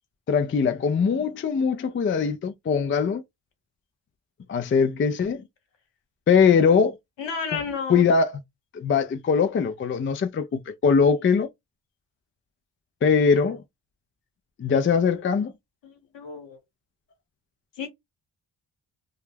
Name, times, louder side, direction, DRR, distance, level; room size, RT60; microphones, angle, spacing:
voice 1, 0.3-3.2 4.5-5.4 6.3-7.0 7.5-7.6 7.9-8.3 8.7-11.5 13.0-13.6 14.6-15.5, left 6 dB, 30° left, 0.3 m, -21 dB
voice 2, 7.2-8.1 15.8-16.6 17.8-17.9, left 5 dB, 60° left, 1.1 m, -32 dB
2.3 x 2.0 x 3.2 m
cardioid pair, 55°, 49 cm